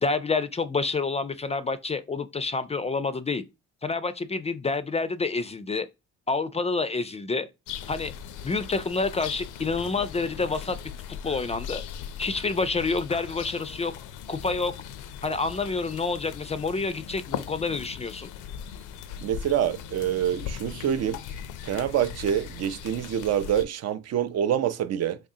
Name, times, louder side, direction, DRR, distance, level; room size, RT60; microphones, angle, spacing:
voice 1, 0.0-3.4 3.8-5.9 6.3-7.5 7.9-8.1 8.4-10.8 11.2-11.8 12.2-13.9 14.3-14.7 15.2-18.3, left 4 dB, 20° left, 0.3 m, -28 dB
sound 1, 7.7-23.6, left 9 dB, 85° left, 0.5 m, -39 dB
voice 2, 19.2-21.2 21.6-25.2, right 10 dB, 60° right, 0.4 m, -26 dB
3.6 x 3.3 x 2.7 m
cardioid pair, 90°, 30 cm